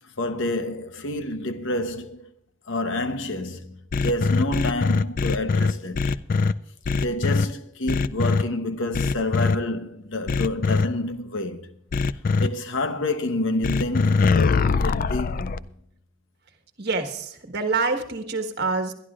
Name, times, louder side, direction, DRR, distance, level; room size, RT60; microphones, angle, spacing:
voice 1, 0.2-2.3 2.7-6.0 6.9-11.7 12.4-15.6, left 2 dB, 65° left, 1.0 m, -28 dB
sound 1, 3.9-6.5 6.8-7.4 7.9-8.4 8.9-9.6 10.3-10.8 11.9-12.5 13.6-15.6, left 4 dB, 40° left, 0.4 m, -22 dB
voice 2, 16.8-18.9, right 3 dB, 50° right, 1.5 m, -26 dB
22.5 x 11.5 x 2.4 m
head